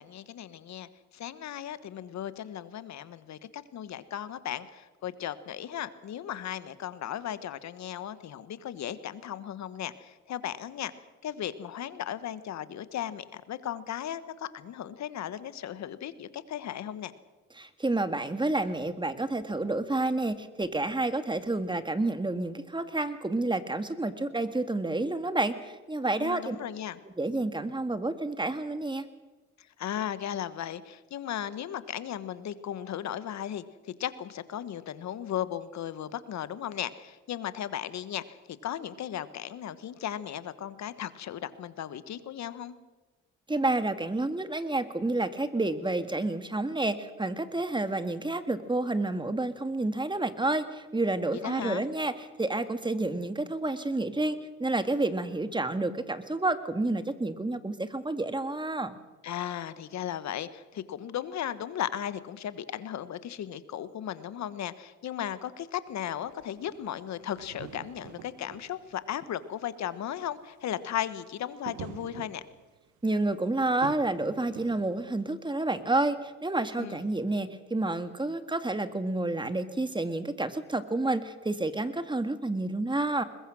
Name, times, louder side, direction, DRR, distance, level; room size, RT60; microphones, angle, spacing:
voice 1, 0.0-10.9 11.2-17.1 26.2-27.0 29.6-42.7 51.3-51.8 59.2-72.4 76.8-77.0, left 10 dB, 65° left, 14 dB, 1.4 m, -36 dB
voice 2, 17.6-26.6 27.2-29.1 43.5-52.1 52.4-58.9 73.0-83.2, right 2 dB, 15° right, 10 dB, 1.9 m, -29 dB
sound 1, 66.0-66.1 66.3-69.4 69.9-70.0 70.3-70.5 71.6-72.9 73.8-75.0, right 10 dB, 75° right, 1.4 m, -45 dB
21.5 x 21.0 x 6.3 m, 1.2 s
supercardioid pair, 60°, 30 cm